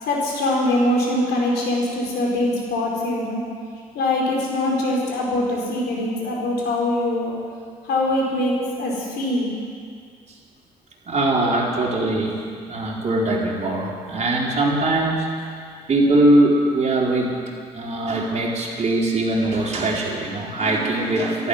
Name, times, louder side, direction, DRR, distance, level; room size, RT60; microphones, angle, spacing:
voice 1, 0.0-3.4 3.9-7.3 7.9-9.5, left 1 dB, 65° left, -2 dB, 4.7 m, -23 dB
voice 2, 11.1-12.4 12.7-15.6 15.9-17.3 17.7-21.5, right 2 dB, 40° right, -2 dB, 4.0 m, -21 dB
12.5 x 12.0 x 9.8 m, 2.2 s
hypercardioid pair, 50°, 19 cm